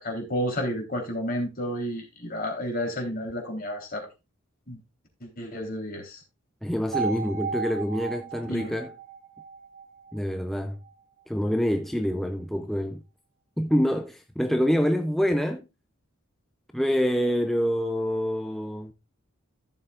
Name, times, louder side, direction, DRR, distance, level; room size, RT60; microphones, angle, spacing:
voice 1, 0.0-4.1 4.7-4.8 5.2-6.2 8.5-8.8, equal, 45° left, 3.6 m, -31 dB
voice 2, 6.6-8.9 10.1-10.8 11.3-13.0 13.6-15.7 16.7-18.9, equal, ahead, 0.5 m, -26 dB
sound 1, 6.9-10.9, right 5 dB, 45° right, 3.9 m, -35 dB
15.0 x 6.9 x 2.5 m
head